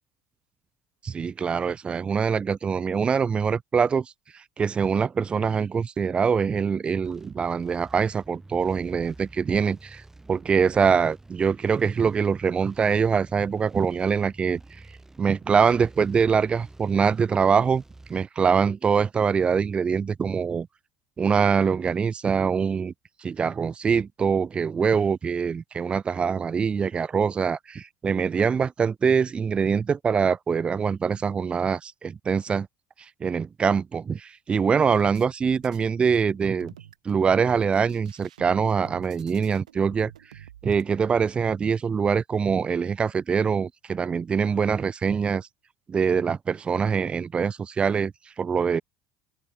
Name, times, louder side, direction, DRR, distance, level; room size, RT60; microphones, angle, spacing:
voice 1, 1.0-4.1 4.3-10.0 10.3-14.6 15.2-17.8 18.1-20.7 21.2-22.9 23.2-32.7 33.2-36.7 37.0-40.1 40.6-45.5 45.9-48.8, right 6 dB, 30° right, 0.8 m, -24 dB
sound 1, 7.0-18.2, right 2 dB, 10° right, 5.3 m, -49 dB
sound 2, 35.0-35.9 36.3-37.2 37.6-40.8, right 11 dB, 80° right, 2.7 m, -48 dB
open air
hypercardioid pair, 65°, 4 cm